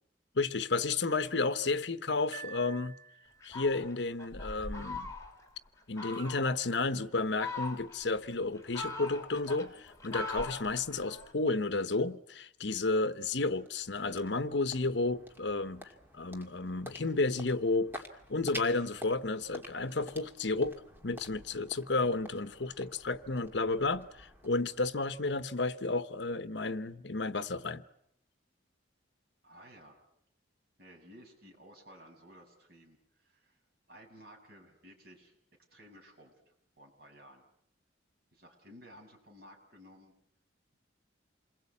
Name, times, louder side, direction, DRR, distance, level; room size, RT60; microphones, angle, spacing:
voice 1, 0.3-3.0 3.4-5.1 5.9-18.0 18.3-27.8, left 3 dB, 60° left, 1.0 m, -32 dB
Piano, 2.3-3.6, right 7 dB, 40° right, 1.4 m, -48 dB
Fowl, 3.4-5.5 6.0-6.6 7.2-8.1 8.5-11.3, left 3 dB, 15° left, 3.3 m, -41 dB
sound 1, 13.5-25.6, equal, 10° right, 2.5 m, -50 dB
voice 2, 29.4-30.0 30.8-33.6 33.9-35.4 35.7-37.4 38.3-40.1, equal, 55° right, 6.9 m, -55 dB
28.0 x 21.5 x 8.5 m
head